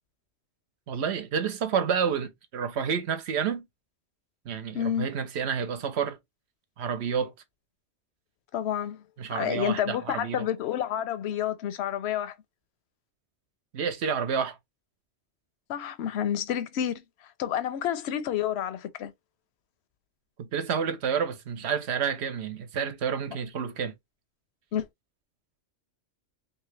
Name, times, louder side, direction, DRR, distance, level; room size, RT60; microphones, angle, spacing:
voice 1, 0.9-3.7 4.5-6.2 6.8-7.3 9.2-10.5 13.7-14.6 20.4-23.9, right 7 dB, 70° right, 0.9 m, -29 dB
voice 2, 4.7-5.1 8.5-9.0 9.3-12.3 15.7-17.0 17.4-19.1 24.7-24.9, left 10 dB, 70° left, 0.8 m, -29 dB
2.8 x 2.8 x 3.2 m
omnidirectional pair, 1.2 m